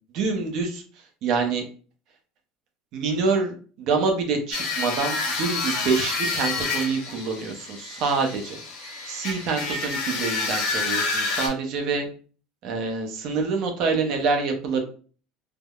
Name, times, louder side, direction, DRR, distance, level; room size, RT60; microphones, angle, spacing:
voice 1, 0.1-0.8 1.2-1.6 2.9-8.6 9.1-12.1 12.6-14.8, right 4 dB, 45° right, 4 dB, 0.5 m, -26 dB
sound 1, 4.5-11.5, left 3 dB, 55° left, 0.9 m, -28 dB
3.4 x 2.0 x 2.3 m, 0.40 s
cardioid pair, 170°, 0 cm